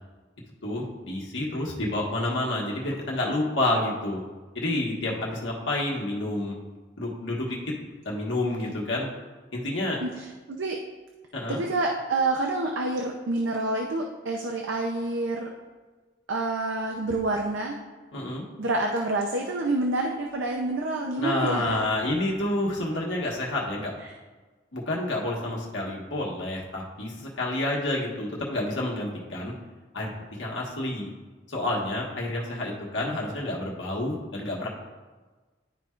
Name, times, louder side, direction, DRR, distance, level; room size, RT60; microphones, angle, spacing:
voice 1, 0.6-4.2 4.5-6.5 7.0-7.7 8.0-9.1 9.5-10.0 11.3-11.6 18.1-18.4 21.2-23.9 24.7-29.5 29.9-30.1 30.4-31.1 31.5-34.7, left 1 dB, 80° left, -3 dB, 1.4 m, -29 dB
voice 2, 10.0-10.8 11.5-15.5 16.3-17.8 18.6-21.8 24.0-24.1, right 2 dB, 85° right, 1 dB, 0.6 m, -28 dB
11.5 x 4.4 x 2.4 m, 1.3 s
head